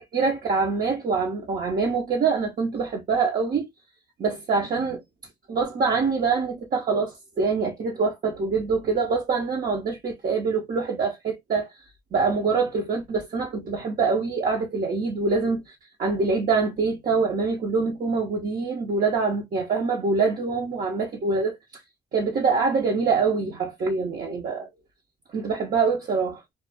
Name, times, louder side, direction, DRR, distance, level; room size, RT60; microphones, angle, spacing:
voice 1, 0.1-3.7 4.2-5.0 5.5-11.7 12.1-21.6 22.1-24.7 25.3-26.4, right 4 dB, 45° right, 0.8 m, -25 dB
2.3 x 2.1 x 3.3 m
cardioid pair, 90°, 20 cm